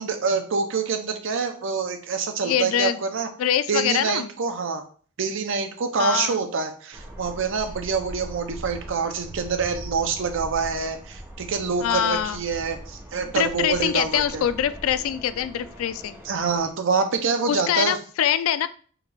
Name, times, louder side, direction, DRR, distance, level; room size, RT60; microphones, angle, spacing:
voice 1, 0.0-3.3 3.7-4.8 5.2-14.5 16.2-18.0, right 5 dB, 65° right, 7 dB, 0.6 m, -26 dB
voice 2, 2.4-3.0 3.4-4.3 6.0-6.4 11.8-12.4 13.3-16.2 17.5-18.7, left 9 dB, 75° left, 13 dB, 0.3 m, -24 dB
sound 1, 6.9-16.7, equal, 15° right, 0.6 m, -41 dB
4.7 x 2.4 x 3.3 m, 0.43 s
head